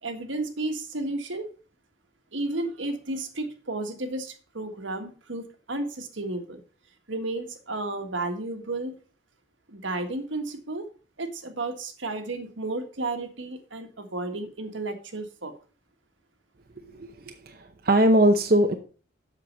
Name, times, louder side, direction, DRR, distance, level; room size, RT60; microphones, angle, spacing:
voice 1, 0.0-1.5 2.3-6.6 7.1-8.9 9.7-10.9 11.2-15.5, right 2 dB, 80° right, 5 dB, 1.6 m, -32 dB
voice 2, 16.9-18.7, right 1 dB, 50° right, 4 dB, 0.8 m, -21 dB
7.6 x 6.6 x 5.4 m, 0.38 s
head